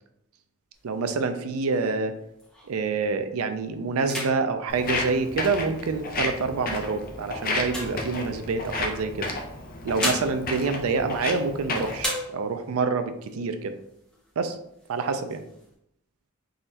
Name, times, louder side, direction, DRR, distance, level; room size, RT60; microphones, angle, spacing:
sound 1, 0.7-2.9 3.4-3.6 4.0-5.9 6.6-8.7 9.6-11.6 11.9-12.8 13.3-13.4 13.6-14.3 14.8-15.7, left 1 dB, 5° left, 1.1 m, -36 dB
voice 1, 0.8-2.1 2.6-9.3 9.8-13.8 14.4-14.6 14.9-15.4, right 4 dB, 70° right, 9 dB, 0.4 m, -27 dB
Walk footsteps, 4.7-12.1, left 2 dB, 40° left, 0.6 m, -32 dB
3.8 x 3.0 x 2.8 m, 0.76 s
head